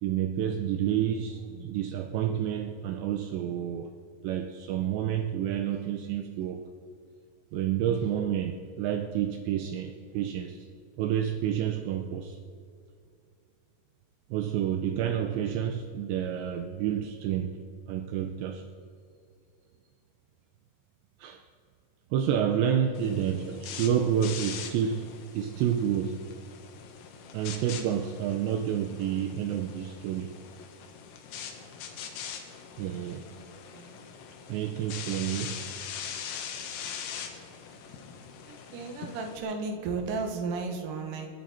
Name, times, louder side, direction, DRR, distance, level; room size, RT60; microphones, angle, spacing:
voice 1, 0.0-3.9 4.2-6.7 7.5-10.7 11.0-12.4 14.3-17.6 17.9-18.6 21.2-21.4 22.1-26.2 27.3-30.4 32.8-33.3 34.5-35.6, right 9 dB, 80° right, 6 dB, 2.5 m, -29 dB
sound 1, 22.9-39.4, left 7 dB, 90° left, 4.1 m, -42 dB
voice 2, 23.0-23.6 33.3-33.5 33.7-34.0 38.5-41.3, right 4 dB, 65° right, 3 dB, 2.2 m, -35 dB
29.5 x 11.0 x 4.3 m, 2.4 s
omnidirectional pair, 5.8 m